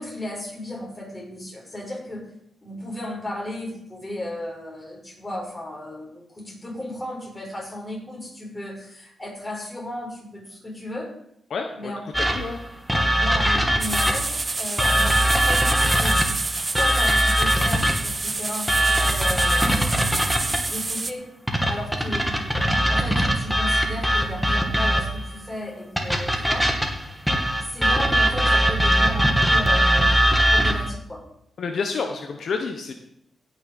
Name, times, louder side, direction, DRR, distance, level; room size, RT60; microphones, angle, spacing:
voice 1, 0.0-2.3 2.6-11.1 11.8-12.0 13.2-16.2 16.7-20.0 20.7-21.2 21.7-22.6 22.9-26.7 27.6-30.2 30.5-31.2, left 1 dB, 20° left, -1 dB, 5.5 m, -34 dB
voice 2, 11.5-11.9 12.2-12.6 31.6-32.9, left 5 dB, 70° left, 5 dB, 1.1 m, -29 dB
sound 1, 12.1-14.4 14.8-18.2 18.7-20.7 21.5-25.3 26.0-30.9, equal, ahead, 2.2 m, -21 dB
sound 2, 13.8-21.1, right 3 dB, 30° right, 0.9 m, -29 dB
16.5 x 6.4 x 5.4 m, 0.77 s
cardioid pair, 80°, 0 cm